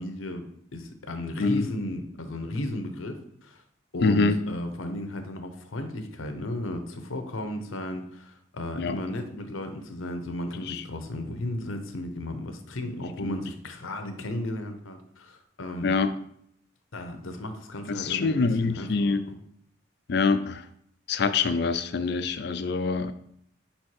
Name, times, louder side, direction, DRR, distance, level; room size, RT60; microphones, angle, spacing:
voice 1, 0.0-3.6 3.9-15.9 16.9-19.3, left 1 dB, 90° left, 7 dB, 0.9 m, -34 dB
voice 2, 4.0-4.4 8.8-9.0 10.7-10.8 13.2-13.4 15.8-16.1 18.0-19.2 20.1-20.6 21.1-23.1, left 4 dB, 55° left, 10 dB, 0.4 m, -25 dB
5.2 x 4.4 x 4.7 m, 0.70 s
head